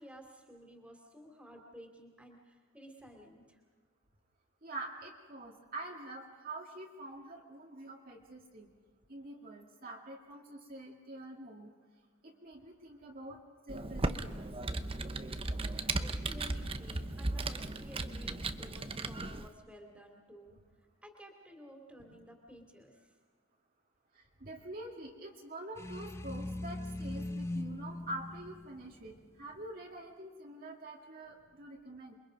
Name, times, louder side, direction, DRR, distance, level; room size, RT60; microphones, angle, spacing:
voice 1, 0.0-3.6 15.7-23.2, equal, 5° right, 2 dB, 3.0 m, -54 dB
voice 2, 4.6-8.7 9.1-11.7 12.2-13.4 13.7-14.7 24.1-32.1, right 2 dB, 45° right, -1 dB, 2.1 m, -46 dB
Computer keyboard, 13.7-19.5, right 2 dB, 25° right, 0.8 m, -36 dB
sound 1, 25.8-29.7, left 1 dB, 15° left, 0.8 m, -40 dB
28.0 x 23.5 x 5.3 m, 1.5 s
head